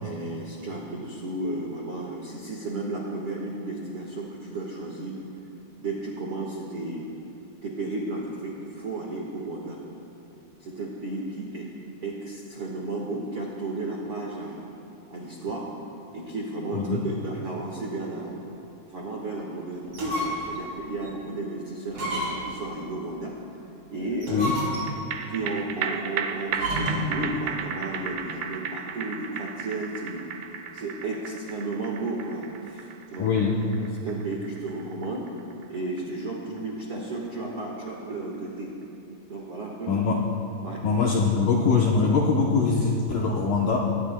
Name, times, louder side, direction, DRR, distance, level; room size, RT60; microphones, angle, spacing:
voice 1, 0.0-5.2 5.8-7.1 7.6-9.8 10.6-11.7 12.0-14.6 15.1-15.7 16.1-18.3 18.9-23.3 23.9-24.5 25.3-30.2 30.7-33.3 33.7-35.3 35.7-38.7 39.3-39.9 40.6-40.8, right 2 dB, 75° right, -2 dB, 1.3 m, -33 dB
voice 2, 16.7-17.0 24.3-24.6 33.2-33.6 39.9-40.2 40.8-43.8, left 4 dB, 80° left, -2 dB, 1.9 m, -23 dB
sound 1, 19.8-20.6 21.0-21.1 21.9-22.6 24.1-25.1 26.5-27.2, equal, 30° right, 5.0 m, -30 dB
sound 2, 24.9-37.5 37.9-38.0, right 7 dB, 90° right, 2.1 m, -35 dB
24.0 x 19.0 x 2.2 m, 2.8 s
omnidirectional pair, 4.9 m